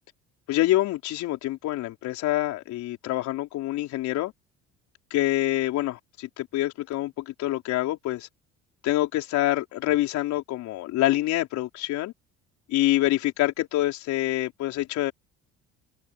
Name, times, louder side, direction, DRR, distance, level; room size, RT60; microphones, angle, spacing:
voice 1, 0.5-4.3 5.1-8.3 8.8-12.1 12.7-15.1, left 15 dB, 70° left, 4.7 m, -26 dB
supercardioid pair, 90°, 29 cm